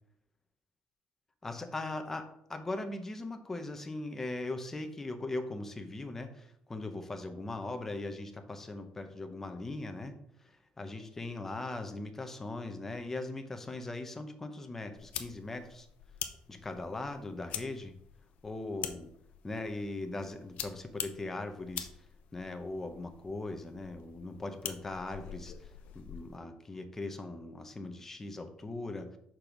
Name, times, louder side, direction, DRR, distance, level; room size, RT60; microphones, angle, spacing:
voice 1, 1.4-15.9 16.5-17.9 18.4-19.1 19.4-29.2, left 2 dB, 15° left, 6 dB, 0.7 m, -40 dB
sound 1, 15.0-26.4, left 10 dB, 70° left, 0.6 m, -45 dB
5.1 x 4.4 x 6.1 m, 0.72 s
cardioid pair, 155°, 3 cm